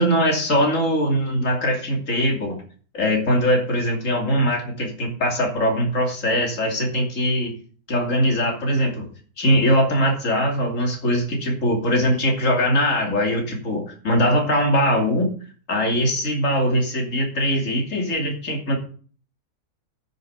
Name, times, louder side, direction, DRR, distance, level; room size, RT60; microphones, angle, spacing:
voice 1, 0.0-2.6 2.9-7.5 7.9-9.1 9.4-15.3 15.7-18.8, equal, 55° left, 2 dB, 3.1 m, -21 dB
9.8 x 6.8 x 7.9 m, 0.42 s
omnidirectional pair, 1.6 m